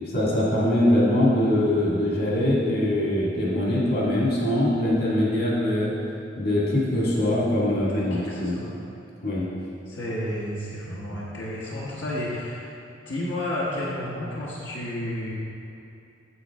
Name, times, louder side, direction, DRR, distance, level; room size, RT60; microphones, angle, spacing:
voice 1, 0.1-6.0 6.4-8.6 9.2-9.5, left 1 dB, 55° left, -5 dB, 1.8 m, -22 dB
voice 2, 7.9-8.7 9.9-12.7 13.0-15.3, left 1 dB, 80° left, -7 dB, 1.2 m, -31 dB
9.4 x 7.5 x 3.5 m, 2.7 s
head